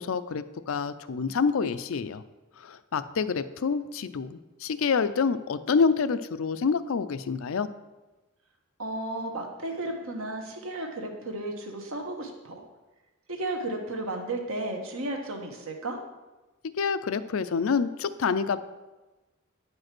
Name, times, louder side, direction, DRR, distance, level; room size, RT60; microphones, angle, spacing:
voice 1, 0.0-2.2 2.6-7.7 16.6-18.6, left 5 dB, 70° left, 13 dB, 0.4 m, -27 dB
voice 2, 8.8-12.6 13.3-16.0, right 2 dB, 70° right, 3 dB, 1.4 m, -34 dB
9.4 x 5.3 x 6.0 m, 1.1 s
head